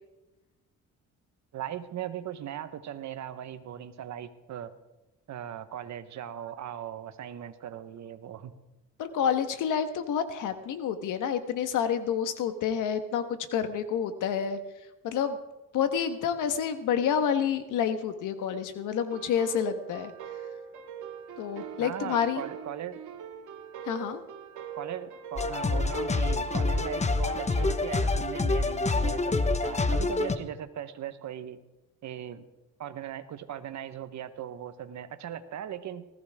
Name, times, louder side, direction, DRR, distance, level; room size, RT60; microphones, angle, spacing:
voice 1, 1.5-4.7 5.3-8.5 21.8-23.0 24.7-31.6 32.0-32.4 32.8-36.1, right 10 dB, 65° right, 11 dB, 1.2 m, -39 dB
voice 2, 9.0-14.6 15.0-15.4 15.7-20.1 21.4-22.4 23.9-24.2, left 8 dB, 85° left, 9 dB, 1.5 m, -28 dB
sound 1, 19.1-27.8, right 8 dB, 85° right, 1.9 m, -42 dB
sound 2, 25.4-30.4, left 3 dB, 20° left, 1.0 m, -27 dB
19.5 x 14.5 x 3.6 m, 1.0 s
cardioid pair, 90°, 30 cm